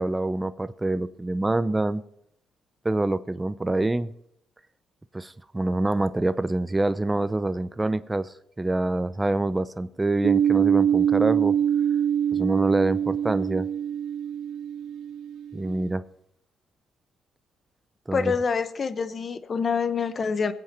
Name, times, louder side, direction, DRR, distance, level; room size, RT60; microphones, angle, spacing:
voice 1, 0.0-2.0 2.8-4.1 5.1-11.6 12.3-13.7 15.5-16.0 18.1-18.3, right 2 dB, 15° right, 0.6 m, -26 dB
sound 1, 10.2-15.7, right 9 dB, 75° right, 1.6 m, -24 dB
voice 2, 18.1-20.5, left 5 dB, 40° left, 1.0 m, -26 dB
21.0 x 8.4 x 4.4 m
cardioid pair, 90°, 0 cm